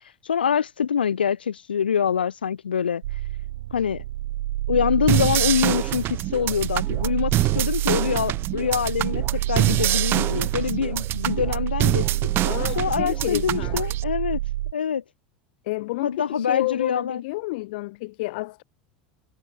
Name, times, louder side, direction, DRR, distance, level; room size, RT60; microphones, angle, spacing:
voice 1, 0.2-3.0 3.7-4.0 4.7-12.3 12.8-14.4 14.7-15.0 16.0-17.2, left 7 dB, 90° left, 4.8 m, -25 dB
sound 1, 3.0-14.7, right 15 dB, 70° right, 3.3 m, -28 dB
sound 2, 5.1-14.0, right 15 dB, 45° right, 7.1 m, -26 dB
voice 2, 12.4-13.8 15.6-18.6, left 22 dB, 65° left, 2.9 m, -30 dB
hypercardioid pair, 90°, 5 cm